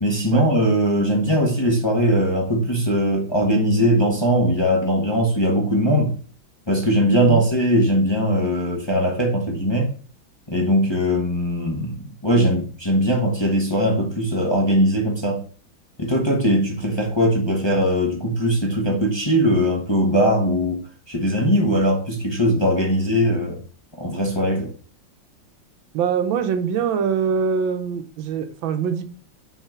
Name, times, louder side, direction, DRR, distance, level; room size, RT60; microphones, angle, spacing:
voice 1, 0.0-6.1 6.7-9.9 10.5-12.0 12.2-15.4 16.0-23.6 24.0-24.7, equal, 15° left, 1.0 m, -20 dB
voice 2, 25.9-29.1, right 6 dB, 85° right, 1.6 m, -23 dB
5.8 x 3.9 x 5.8 m
omnidirectional pair, 2.1 m